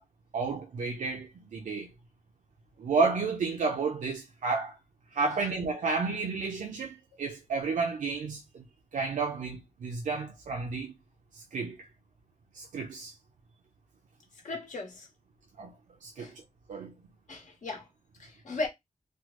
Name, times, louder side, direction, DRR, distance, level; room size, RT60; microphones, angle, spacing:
voice 1, 0.3-1.9 2.8-4.8 5.1-8.6 8.9-10.9 11.3-11.9 12.5-13.1 15.6-15.7 16.0-16.4 16.7-16.9, right 4 dB, 90° right, 0.5 m, -31 dB
voice 2, 14.4-15.1 16.2-16.3 17.3-17.9 18.2-18.7, left 3 dB, 85° left, 1.1 m, -36 dB
3.3 x 2.1 x 3.0 m
wide cardioid pair, 155°, 13 cm